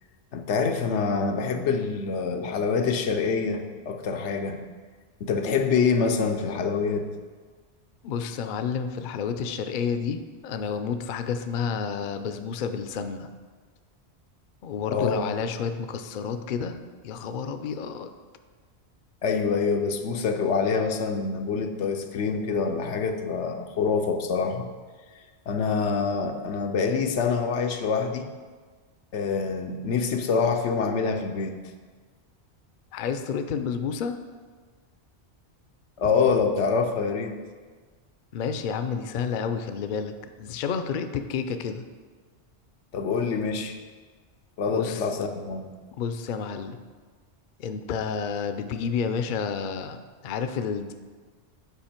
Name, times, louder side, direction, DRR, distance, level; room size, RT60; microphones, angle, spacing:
voice 1, 0.3-4.6 5.2-7.1 14.9-15.2 19.2-24.7 25.5-28.3 29.1-31.6 36.0-37.3 42.9-43.8 44.6-45.7, left 5 dB, 90° left, 5 dB, 1.0 m, -26 dB
voice 2, 8.0-13.3 14.6-18.1 32.9-34.2 38.3-40.1 40.4-41.8 44.7-45.0 46.0-46.8 47.6-50.0 50.2-50.9, left 6 dB, 60° left, 8 dB, 0.6 m, -30 dB
8.1 x 5.2 x 4.4 m, 1.5 s
omnidirectional pair, 1.1 m